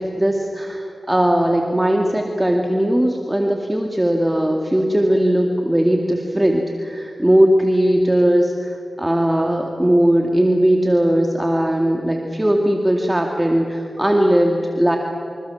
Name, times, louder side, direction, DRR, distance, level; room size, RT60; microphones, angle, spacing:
voice 1, 0.0-15.0, right 1 dB, 15° right, 2 dB, 2.4 m, -18 dB
28.0 x 26.0 x 7.3 m, 2.7 s
cardioid pair, 45°, 0 cm